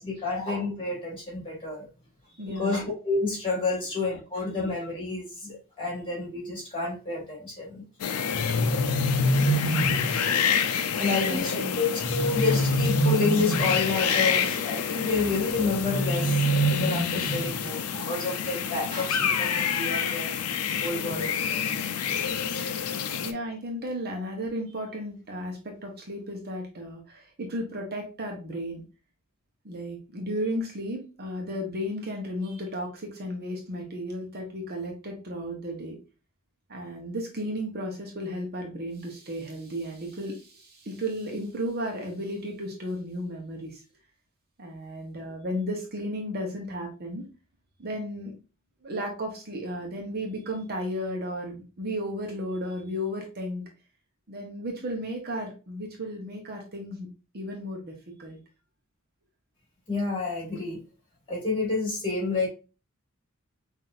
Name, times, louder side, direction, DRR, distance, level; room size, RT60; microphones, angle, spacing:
voice 1, 0.0-1.8 2.5-7.8 10.8-16.4 16.7-20.4 20.8-21.4 59.9-60.8 61.3-62.5, left 3 dB, 25° left, -3 dB, 2.4 m, -29 dB
voice 2, 2.4-2.7 11.1-11.7 23.2-28.8 29.6-36.0 36.7-43.8 44.6-47.2 47.8-48.3 48.8-53.7 54.3-57.1 57.3-57.9 58.2-58.4, equal, 45° right, 1 dB, 1.0 m, -34 dB
sound 1, 8.0-23.3, left 7 dB, 90° left, 0.5 m, -28 dB
sound 2, 8.3-10.2 12.0-13.9 15.7-17.6, right 1 dB, 55° left, 0.8 m, -25 dB
5.7 x 2.7 x 2.5 m, 0.32 s
head